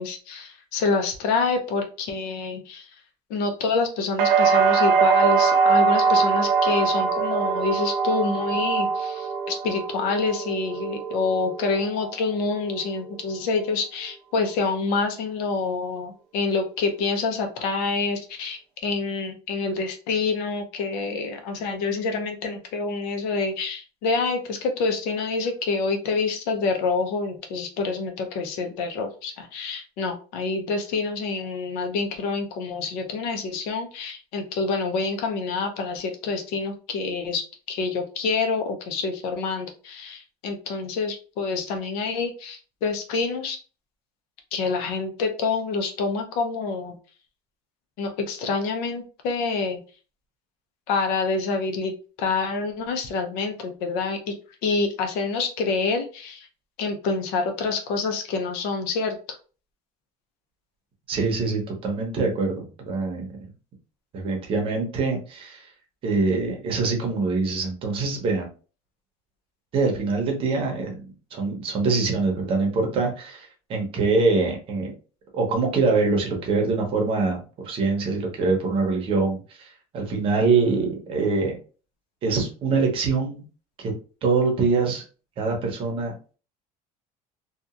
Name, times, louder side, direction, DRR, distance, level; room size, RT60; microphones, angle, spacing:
voice 1, 0.0-2.9 3.3-37.4 37.7-43.6 44.5-46.9 48.0-49.8 50.9-54.3 54.6-56.5 56.8-59.1, left 4 dB, 75° left, 5 dB, 0.7 m, -27 dB
sound 1, 4.2-12.1 12.5-13.1, right 5 dB, 70° right, 0.6 m, -22 dB
voice 2, 61.1-63.3 64.1-65.6 66.0-68.5 69.7-71.0 71.3-74.9 75.3-77.4 77.6-79.7 79.9-81.6 82.2-83.4 83.8-83.9 84.2-85.0 85.4-86.1, right 4 dB, 35° right, 2 dB, 0.8 m, -24 dB
2.8 x 2.4 x 2.4 m, 0.36 s
cardioid pair, 170°, 15 cm